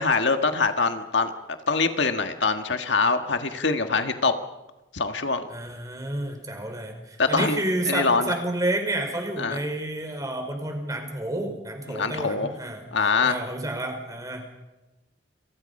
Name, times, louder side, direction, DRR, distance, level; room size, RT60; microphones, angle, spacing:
voice 1, 0.0-1.3 1.7-4.3 4.9-5.4 7.2-7.6 7.9-8.4 9.4-9.6 11.9-12.5 12.9-13.4, left 4 dB, 70° left, 7 dB, 1.6 m, -24 dB
voice 2, 5.5-12.8 13.2-14.4, right 1 dB, 20° right, 4 dB, 4.9 m, -30 dB
30.0 x 24.0 x 5.5 m, 1.0 s
head